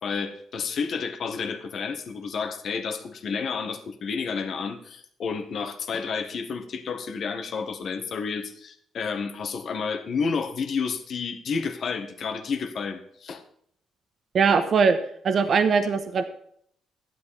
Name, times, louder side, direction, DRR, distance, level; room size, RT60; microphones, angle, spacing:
voice 1, 0.0-13.4, left 5 dB, 60° left, 7 dB, 1.6 m, -30 dB
voice 2, 14.3-15.0 15.2-16.2, right 5 dB, 55° right, 8 dB, 1.2 m, -20 dB
13.0 x 11.0 x 4.2 m, 0.66 s
cardioid pair, 90°, 0 cm